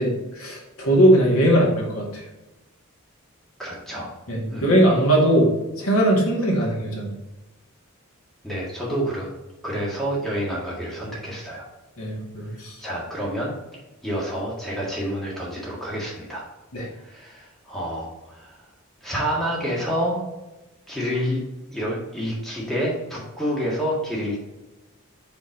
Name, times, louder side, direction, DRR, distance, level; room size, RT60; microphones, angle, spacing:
voice 1, 0.0-2.2 4.3-5.5 5.8-7.1 12.0-12.8 16.7-16.9, right 1 dB, 75° left, -2 dB, 2.1 m, -20 dB
voice 2, 3.6-4.1 4.5-4.7 8.4-9.3 9.6-11.7 12.5-13.5 14.0-16.4 17.0-18.6 19.0-20.2 20.9-21.4 21.7-24.4, equal, ahead, -5 dB, 1.7 m, -28 dB
5.4 x 5.2 x 3.9 m, 1.0 s
head